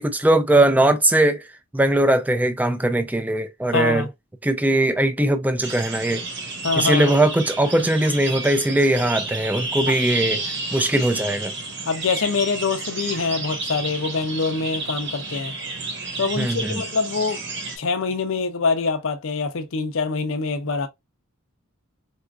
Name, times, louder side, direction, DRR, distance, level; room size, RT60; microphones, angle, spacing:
voice 1, 0.0-1.5 1.7-4.1 4.4-6.2 6.8-10.4 10.7-11.5 16.4-16.8, right 1 dB, 5° right, 0.4 m, -20 dB
voice 2, 3.7-4.1 6.6-7.2 11.8-15.5 16.2-17.4 17.8-20.9, left 4 dB, 65° left, 0.5 m, -24 dB
sound 1, 5.6-17.8, right 3 dB, 55° right, 1.0 m, -31 dB
4.2 x 2.4 x 2.3 m
head